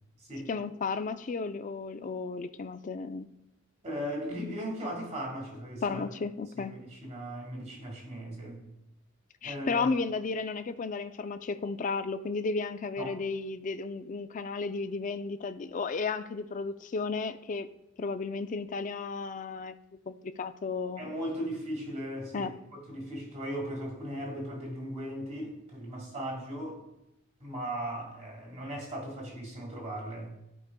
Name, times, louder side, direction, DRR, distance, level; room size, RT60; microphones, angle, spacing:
voice 1, 0.5-3.3 5.8-6.7 9.4-17.7 18.0-19.7 20.1-21.1 22.3-22.5, left 4 dB, 35° left, 10 dB, 0.3 m, -33 dB
voice 2, 3.8-6.0 6.6-8.6 9.4-9.9 13.0-13.2 21.0-22.6 22.9-26.8 27.4-30.3, equal, 30° right, -1 dB, 1.9 m, -37 dB
14.0 x 4.8 x 2.2 m, 0.89 s
head